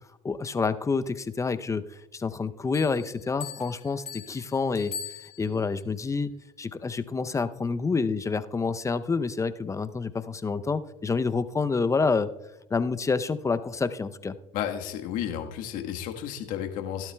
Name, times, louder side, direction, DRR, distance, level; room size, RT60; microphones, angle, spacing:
voice 1, 0.2-1.8 2.1-4.9 5.4-6.3 6.6-12.3 12.7-14.4, left 4 dB, 20° left, 12 dB, 0.6 m, -28 dB
sound 1, 2.7-5.8, left 8 dB, 45° left, 1.3 m, -41 dB
voice 2, 14.5-17.1, left 10 dB, 65° left, 4 dB, 1.4 m, -32 dB
16.5 x 12.0 x 2.3 m, 0.93 s
hypercardioid pair, 75°, 15 cm